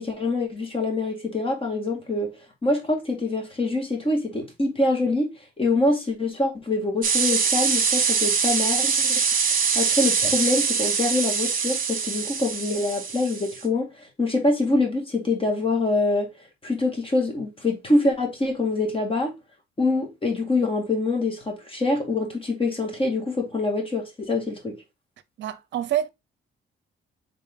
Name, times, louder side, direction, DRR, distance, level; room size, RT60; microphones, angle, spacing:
voice 1, 0.0-9.2 9.7-13.9 14.2-16.3 16.6-19.3 19.8-24.8, left 2 dB, 25° left, 1.9 m, -25 dB
sound 1, 7.0-13.6, right 6 dB, 45° right, 1.2 m, -23 dB
voice 2, 25.4-26.1, right 11 dB, 65° right, 0.6 m, -26 dB
3.8 x 3.7 x 3.6 m
cardioid pair, 90°, 20 cm